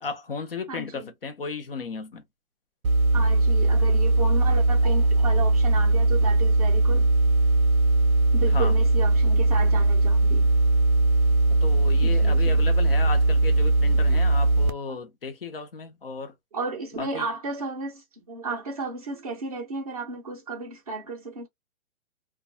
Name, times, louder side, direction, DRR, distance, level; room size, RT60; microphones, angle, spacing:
voice 1, 0.0-2.2 8.5-8.7 11.6-16.3 17.0-17.3, left 4 dB, 45° left, 0.5 m, -34 dB
voice 2, 0.7-1.1 3.1-7.1 8.3-10.5 12.0-12.7 14.1-14.5 14.9-15.0 16.5-21.5, right 3 dB, 25° right, 0.5 m, -34 dB
sound 1, 2.8-14.7, right 2 dB, 75° right, 0.6 m, -20 dB
2.2 x 2.2 x 2.6 m
hypercardioid pair, 160°, 42 cm